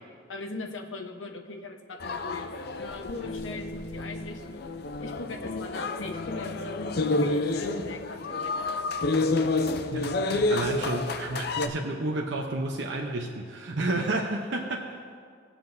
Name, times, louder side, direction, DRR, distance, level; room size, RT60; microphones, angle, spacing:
voice 1, 0.3-2.5 2.8-4.7 5.0-8.7, left 3 dB, 85° left, 4 dB, 1.0 m, -40 dB
sound 1, 2.0-11.7, left 2 dB, 55° left, 0.5 m, -29 dB
voice 2, 9.9-14.9, right 2 dB, 70° right, 0 dB, 0.7 m, -31 dB
21.0 x 7.5 x 2.7 m, 2.1 s
head